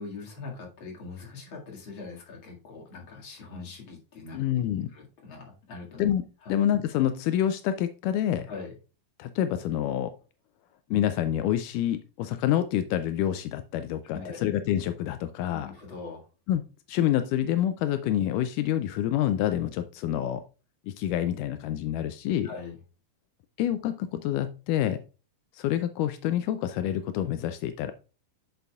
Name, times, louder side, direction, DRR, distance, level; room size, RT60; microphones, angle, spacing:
voice 1, 0.0-4.4 4.9-6.0 6.4-6.5 8.5-8.7 14.1-14.4 15.5-16.3 22.4-22.8, left 4 dB, 40° left, -1 dB, 2.3 m, -42 dB
voice 2, 4.3-4.9 6.0-8.5 9.2-10.1 10.9-15.7 16.5-16.6 16.9-20.4 20.9-22.5 23.6-25.0 25.5-27.9, left 11 dB, 85° left, 10 dB, 1.8 m, -27 dB
9.1 x 6.8 x 2.3 m, 0.34 s
omnidirectional pair, 4.2 m